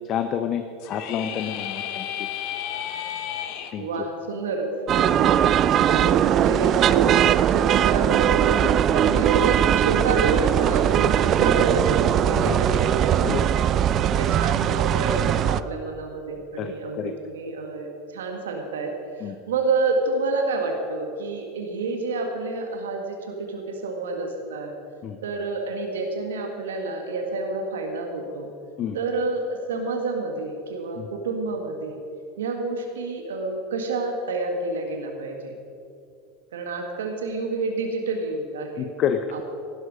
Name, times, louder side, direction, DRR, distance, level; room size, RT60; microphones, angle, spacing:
voice 1, 0.1-2.1 3.7-3.9 5.2-5.3 12.5-12.6 13.2-13.4 16.6-17.1 19.2-19.3 25.0-25.2 28.8-29.0 31.0-31.1 38.8-39.4, left 8 dB, 45° left, 8 dB, 0.8 m, -28 dB
sound 1, 0.8-3.7, left 10 dB, 60° left, 1.2 m, -32 dB
voice 2, 3.8-13.6 14.2-24.7 25.2-28.5 28.9-32.0 32.4-35.6 36.5-38.9 39.3-39.4, right 3 dB, 85° right, 3 dB, 1.7 m, -29 dB
sound 2, 4.9-15.6, right 10 dB, 40° right, 0.5 m, -20 dB
15.5 x 12.0 x 5.0 m, 2.6 s
hypercardioid pair, 95°, 0 cm